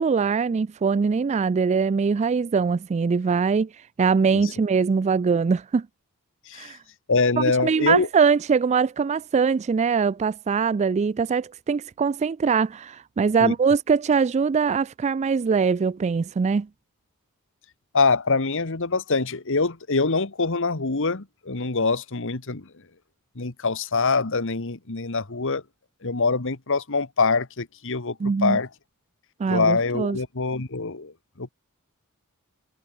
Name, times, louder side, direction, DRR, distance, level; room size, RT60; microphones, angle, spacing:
voice 1, 0.0-3.7 4.0-5.9 6.6-6.8 7.6-16.7 28.2-28.6 29.4-30.2, right 5 dB, 30° right, 0.3 m, -22 dB
voice 2, 6.5-6.8 7.1-8.1 13.4-13.5 17.9-22.7 23.3-25.6 26.0-28.7 29.5-31.1 31.4-31.5, left 4 dB, 60° left, 1.5 m, -24 dB
head